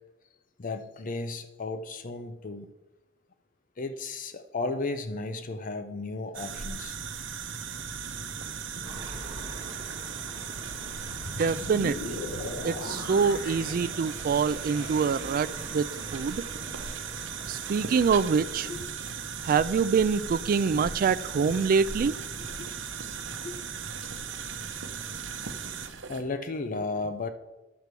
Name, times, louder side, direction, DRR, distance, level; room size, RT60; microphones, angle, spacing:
voice 1, 0.6-2.7 3.8-7.0 14.8-15.1 18.7-18.9 21.4-21.5 22.4-22.7 23.4-23.6 26.1-27.3, left 3 dB, 45° left, 9 dB, 0.6 m, -34 dB
sound 1, 6.3-26.2, right 6 dB, 65° right, 0.9 m, -37 dB
sound 2, 8.8-18.8, right 2 dB, 25° right, 1.8 m, -46 dB
sound 3, 10.7-14.7, left 2 dB, 70° left, 0.9 m, -39 dB
voice 2, 11.2-12.2 12.6-15.9 16.1-16.4 17.5-18.7 19.4-22.1, right 5 dB, 45° right, 16 dB, 0.3 m, -25 dB
11.0 x 4.7 x 6.7 m, 1.0 s
head